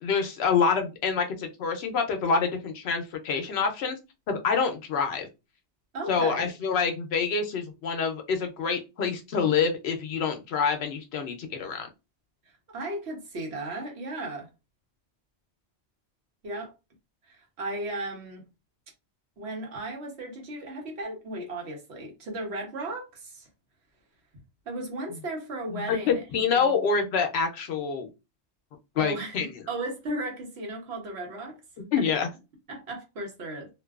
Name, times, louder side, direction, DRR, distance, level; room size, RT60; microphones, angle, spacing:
voice 1, 0.0-4.0 4.3-5.3 6.1-11.9 25.7-28.1 29.0-29.5 31.9-32.3, left 5 dB, 70° left, 0.8 m, -26 dB
voice 2, 5.9-6.5 12.7-14.5 16.4-16.7 17.3-18.4 19.4-23.5 24.7-26.8 29.0-31.6 32.0-32.1 32.7-33.7, right 2 dB, 70° right, 1.1 m, -35 dB
2.6 x 2.2 x 2.3 m
omnidirectional pair, 1.1 m